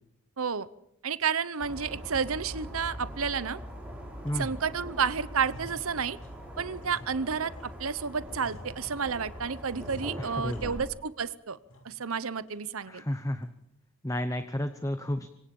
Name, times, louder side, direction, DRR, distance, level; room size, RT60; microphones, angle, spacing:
voice 1, 0.4-0.7 1.0-3.6 4.4-6.2 6.6-11.6 11.8-13.0, right 6 dB, 80° right, 16 dB, 0.8 m, -31 dB
sound 1, 1.6-10.9, equal, 5° right, 5.2 m, -42 dB
sound 2, 3.0-3.8 4.2-4.9 5.1-7.8 8.3-9.2 9.7-11.2 11.5-12.1 12.5-12.6 13.1-13.5, equal, 85° left, 6.3 m, -50 dB
voice 2, 4.2-4.6 10.2-10.8 12.9-13.5 14.0-15.3, left 1 dB, 15° left, 8 dB, 0.9 m, -32 dB
26.5 x 24.5 x 5.4 m, 0.80 s
head